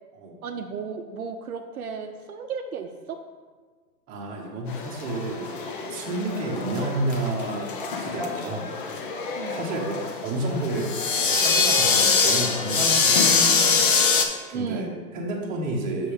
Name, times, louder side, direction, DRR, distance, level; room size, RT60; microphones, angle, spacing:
voice 1, 0.4-3.2 9.3-9.6 14.5-15.0, right 6 dB, 60° right, 5 dB, 0.7 m, -34 dB
voice 2, 4.1-7.7 8.0-8.7 9.5-10.9 11.2-13.6 14.5-14.9 15.1-16.1, right 2 dB, 15° right, -2 dB, 1.0 m, -30 dB
sound 1, 4.7-14.3, left 5 dB, 35° left, 0.7 m, -24 dB
6.9 x 6.0 x 3.5 m, 1.5 s
hypercardioid pair, 135°, 50 cm